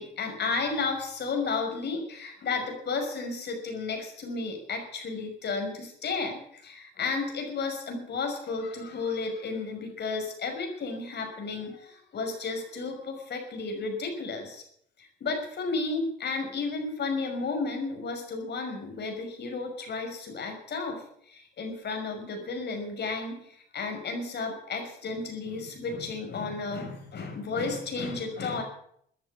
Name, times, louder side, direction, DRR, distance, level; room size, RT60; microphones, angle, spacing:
voice 1, 0.0-14.6 15.0-28.6, left 4 dB, 60° left, 4 dB, 5.8 m, -33 dB
14.5 x 10.5 x 8.4 m, 0.67 s
cardioid pair, 90°, 20 cm